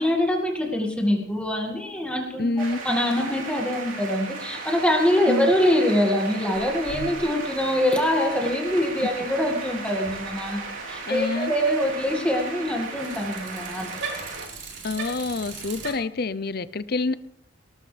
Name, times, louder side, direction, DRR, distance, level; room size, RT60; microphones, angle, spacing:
voice 1, 0.0-14.0, left 1 dB, 5° left, 0 dB, 1.9 m, -24 dB
voice 2, 2.4-2.8 5.3-5.5 11.1-11.5 14.8-17.1, left 3 dB, 50° left, 16 dB, 0.6 m, -27 dB
sound 1, 2.6-14.5, right 4 dB, 85° right, 3.4 m, -36 dB
Bicycle, 6.5-15.9, right 4 dB, 60° right, 4.8 m, -41 dB
19.0 x 18.5 x 3.4 m, 0.77 s
head